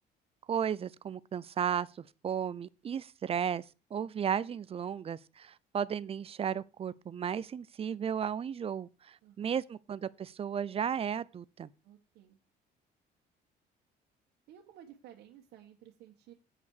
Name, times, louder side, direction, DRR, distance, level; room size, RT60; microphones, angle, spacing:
voice 1, 0.5-3.6 3.9-11.7, right 8 dB, 35° right, 0.5 m, -34 dB
voice 2, 9.2-9.6 11.8-12.4 14.5-16.3, right 10 dB, 75° right, 1.6 m, -55 dB
8.6 x 5.5 x 6.5 m
cardioid pair, 110°, 17 cm